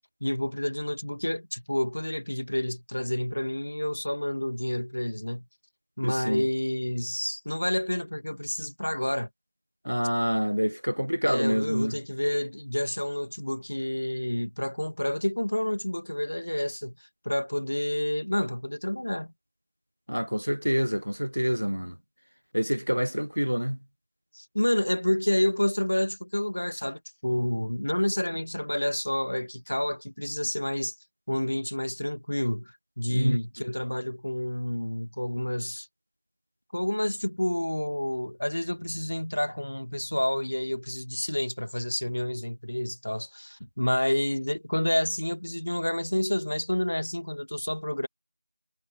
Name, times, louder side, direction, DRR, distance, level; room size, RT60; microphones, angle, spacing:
voice 1, 0.2-5.5 6.0-9.3 11.2-19.3 24.3-31.0 31.3-35.9 36.7-48.1, left 1 dB, 30° left, 1.6 m, -29 dB
voice 2, 6.0-6.4 9.8-12.0 20.1-22.0 22.5-23.8 33.1-33.4, equal, 80° right, 0.9 m, -27 dB
figure-of-eight pair, 180°, 0 cm